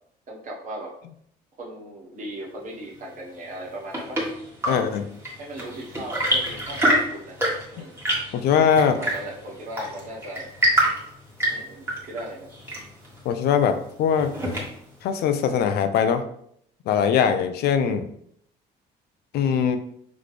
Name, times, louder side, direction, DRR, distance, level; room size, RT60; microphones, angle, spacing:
voice 1, 0.3-0.9 1.6-4.2 4.6-4.8 5.4-7.4 7.7-7.9 8.7-10.5 11.5-12.5, right 1 dB, 50° right, -2 dB, 1.3 m, -37 dB
Chirp tweet / Engine / Tap, 3.5-15.0, right 1 dB, 15° right, 1.4 m, -27 dB
voice 2, 4.7-5.0 8.3-8.9 13.2-14.3 15.0-16.2 16.9-18.1 19.3-19.8, left 7 dB, 70° left, 9 dB, 0.5 m, -21 dB
4.1 x 3.0 x 3.3 m, 0.68 s
cardioid pair, 110°, 17 cm